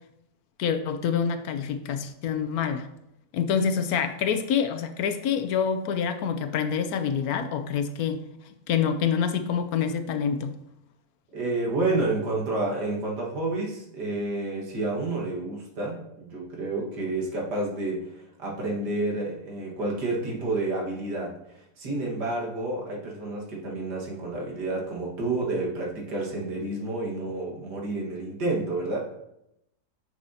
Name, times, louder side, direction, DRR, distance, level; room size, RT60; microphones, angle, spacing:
voice 1, 0.6-2.9 3.3-8.2 8.7-10.6, left 7 dB, 70° left, 8 dB, 1.0 m, -26 dB
voice 2, 11.3-21.3 21.8-29.1, right 2 dB, 85° right, -2 dB, 2.3 m, -29 dB
9.6 x 6.2 x 2.8 m, 0.83 s
omnidirectional pair, 1.7 m